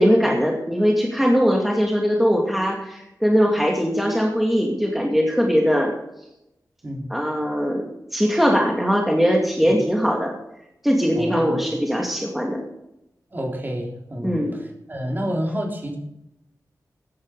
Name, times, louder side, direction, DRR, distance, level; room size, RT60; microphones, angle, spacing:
voice 1, 0.0-5.9 7.1-10.3 10.8-12.6 14.2-14.6, equal, ahead, 0 dB, 2.4 m, -20 dB
voice 2, 11.1-11.7 13.3-14.6 14.9-16.0, equal, 30° right, 0 dB, 3.3 m, -29 dB
14.5 x 11.0 x 4.9 m, 0.84 s
wide cardioid pair, 95°, 6 cm